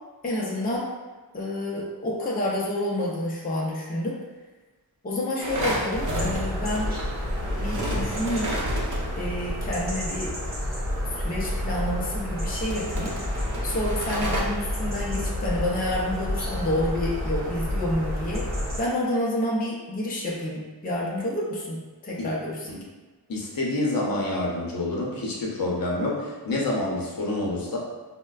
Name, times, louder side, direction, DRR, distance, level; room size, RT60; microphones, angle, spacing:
voice 1, 0.2-0.9 1.3-4.2 5.0-6.9 7.6-8.5 9.2-10.3 11.1-13.1 13.6-18.5 18.8-22.7, left 1 dB, 25° left, -4 dB, 0.5 m, -29 dB
sound 1, 5.4-9.4 11.3-14.4, right 1 dB, 50° right, 0.7 m, -32 dB
sound 2, 5.9-18.8, left 1 dB, 25° right, 0.9 m, -30 dB
voice 2, 23.3-27.8, left 2 dB, 60° left, -3 dB, 0.7 m, -27 dB
4.2 x 2.1 x 2.3 m, 1.2 s
wide cardioid pair, 145°, 39 cm